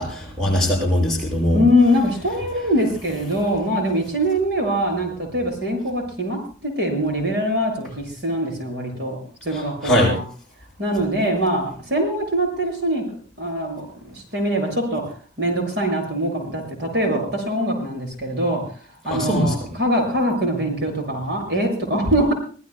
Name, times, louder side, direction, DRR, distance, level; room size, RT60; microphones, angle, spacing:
voice 1, 0.0-1.6 9.5-10.1 19.1-19.5, equal, ahead, -4 dB, 6.6 m, -21 dB
voice 2, 1.5-10.2 10.8-13.0 13.4-15.0 15.4-22.3, equal, 55° right, 2 dB, 7.1 m, -23 dB
24.0 x 19.0 x 2.2 m, 0.40 s
head